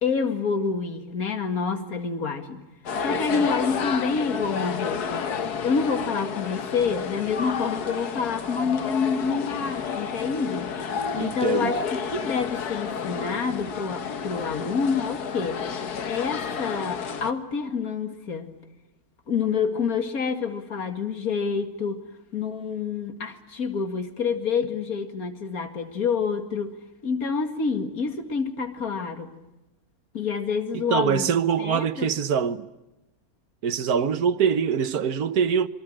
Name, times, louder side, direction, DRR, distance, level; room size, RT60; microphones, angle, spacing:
voice 1, 0.0-2.6 3.0-5.3 5.6-10.7 11.1-11.8 12.1-15.6 16.1-18.5 19.3-22.0 22.3-26.7 27.0-29.3 30.1-31.3 31.6-32.1, left 5 dB, 70° left, 2.6 m, -27 dB
sound 1, 2.9-17.3, left 6 dB, 90° left, 1.8 m, -31 dB
voice 2, 3.1-3.5 11.2-11.8 30.7-32.7 33.6-35.7, right 7 dB, 75° right, 1.6 m, -24 dB
27.0 x 23.5 x 8.8 m
omnidirectional pair, 1.6 m